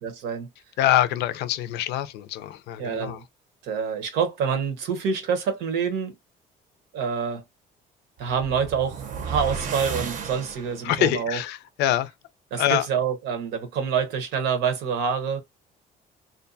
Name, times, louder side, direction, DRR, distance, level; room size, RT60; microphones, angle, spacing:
voice 1, 0.0-0.5 2.8-3.2 3.6-6.1 6.9-7.4 8.2-11.4 12.5-15.4, right 6 dB, 85° right, 0.8 m, -27 dB
voice 2, 0.8-3.2 10.8-12.1 12.6-12.9, left 12 dB, 80° left, 0.4 m, -24 dB
sound 1, 8.2-11.0, right 5 dB, 50° right, 0.6 m, -33 dB
2.6 x 2.2 x 2.5 m
cardioid pair, 110°, 17 cm